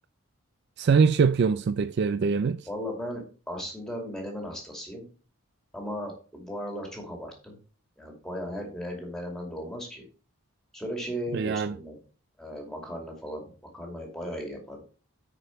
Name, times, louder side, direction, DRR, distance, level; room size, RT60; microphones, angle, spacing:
voice 1, 0.8-2.7 11.3-11.8, right 5 dB, 50° right, 0.3 m, -23 dB
voice 2, 2.7-5.1 5.7-7.6 8.0-10.0 10.7-12.0 12.4-14.8, equal, ahead, 2.4 m, -36 dB
9.1 x 5.0 x 4.5 m
head